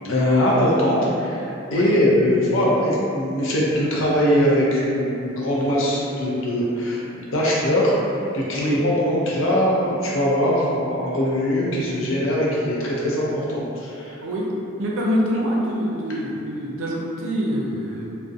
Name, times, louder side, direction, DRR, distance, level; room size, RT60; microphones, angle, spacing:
voice 1, 0.0-8.0 8.3-14.1, equal, 75° left, -5 dB, 0.5 m, -21 dB
voice 2, 14.2-14.5 14.8-18.1, equal, 80° right, -3 dB, 0.4 m, -25 dB
2.6 x 2.0 x 2.4 m, 2.7 s
head